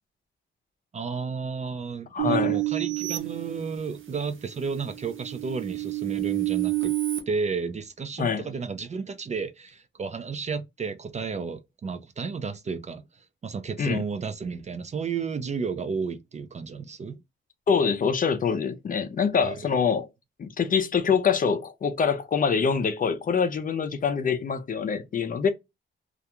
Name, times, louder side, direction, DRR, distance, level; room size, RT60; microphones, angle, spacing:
voice 1, 0.9-6.9 7.3-17.2 19.4-19.7, right 5 dB, 35° right, 0.3 m, -32 dB
voice 2, 2.1-2.6 8.2-8.5 13.8-14.0 17.7-20.1 20.4-25.5, left 6 dB, 40° left, 0.4 m, -25 dB
sound 1, 2.2-4.1 4.7-7.2, right 19 dB, 70° right, 0.7 m, -29 dB
2.4 x 2.2 x 2.8 m
wide cardioid pair, 160°, 21 cm